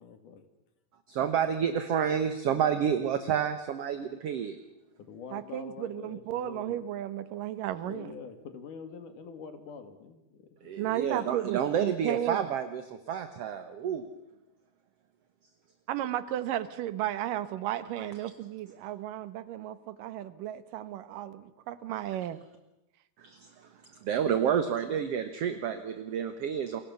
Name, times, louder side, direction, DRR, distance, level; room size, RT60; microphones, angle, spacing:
voice 1, 0.0-0.4 5.0-6.8 7.8-11.4, left 5 dB, 75° left, 8 dB, 3.6 m, -46 dB
voice 2, 1.1-4.6 10.6-14.1 18.0-18.1 23.2-23.7 24.0-26.8, right 8 dB, 60° right, 9 dB, 1.9 m, -29 dB
voice 3, 5.3-8.1 10.8-12.5 15.9-22.4, right 12 dB, 85° right, 14 dB, 2.8 m, -34 dB
29.0 x 22.0 x 7.1 m, 0.95 s
omnidirectional pair, 3.8 m